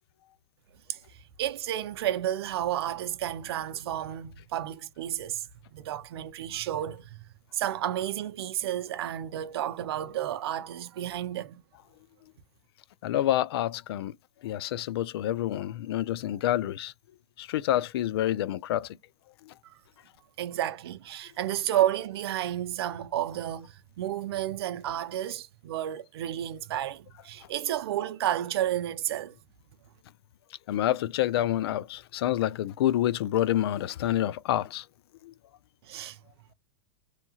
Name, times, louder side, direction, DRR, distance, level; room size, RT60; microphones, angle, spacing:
voice 1, 0.9-7.2 7.5-11.6 19.6-19.8 20.4-29.4 35.8-36.2, right 12 dB, 80° right, 0.5 m, -31 dB
voice 2, 13.0-14.1 14.4-16.9 17.4-19.0 19.5-19.6 30.7-34.8 35.2-35.3, left 13 dB, 80° left, 0.4 m, -28 dB
2.9 x 2.2 x 2.8 m
supercardioid pair, 150°, 13 cm